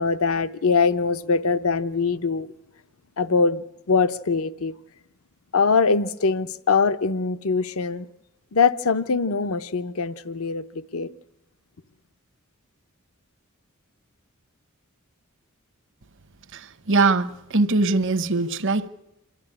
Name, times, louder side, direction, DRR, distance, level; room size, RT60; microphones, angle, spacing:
voice 1, 0.0-2.5 3.2-4.7 5.5-8.1 8.5-11.1, left 4 dB, 85° left, 0.8 m, -22 dB
voice 2, 16.5-18.9, right 3 dB, 60° right, 0.9 m, -22 dB
27.5 x 11.5 x 9.8 m
head